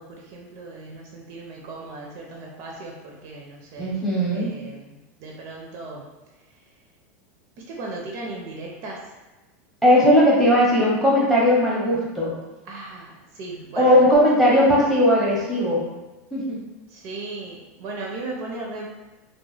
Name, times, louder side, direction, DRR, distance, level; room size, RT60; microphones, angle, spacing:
voice 1, 0.0-4.0 4.3-6.1 6.4-6.6 7.6-9.1 12.7-14.1 16.9-18.9, right 2 dB, 40° right, -1 dB, 0.4 m, -37 dB
voice 2, 3.8-4.5 9.8-12.3 13.8-15.8 16.3-16.6, equal, ahead, -6 dB, 0.7 m, -18 dB
2.3 x 2.1 x 3.2 m, 1.1 s
supercardioid pair, 155°, 8 cm